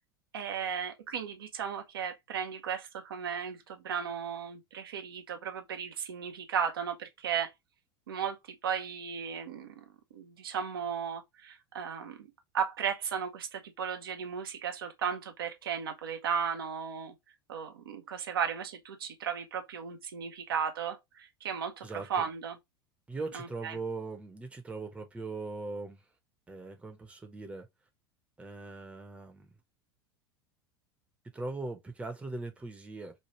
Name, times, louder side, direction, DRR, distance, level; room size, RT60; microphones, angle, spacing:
voice 1, 0.3-7.5 8.1-9.8 10.1-12.3 12.5-17.1 17.5-22.6 23.3-23.8, right 7 dB, 70° right, 0.6 m, -35 dB
voice 2, 21.8-22.3 23.1-26.0 26.5-27.7 28.4-29.5 31.3-33.1, right 3 dB, 10° right, 0.7 m, -40 dB
3.1 x 2.3 x 2.9 m
figure-of-eight pair, 80°, 13 cm